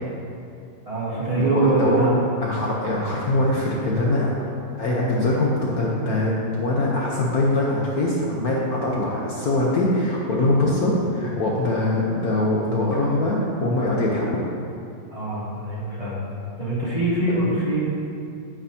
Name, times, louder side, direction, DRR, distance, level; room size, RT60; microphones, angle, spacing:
voice 1, 0.9-2.1 15.1-16.2 16.6-17.8, right 2 dB, 20° right, -9 dB, 2.3 m, -23 dB
voice 2, 1.5-2.0 2.4-4.4 4.8-14.4 17.3-17.5, left 2 dB, 60° left, -4 dB, 1.3 m, -23 dB
9.2 x 8.9 x 2.8 m, 2.5 s
omnidirectional pair, 2.0 m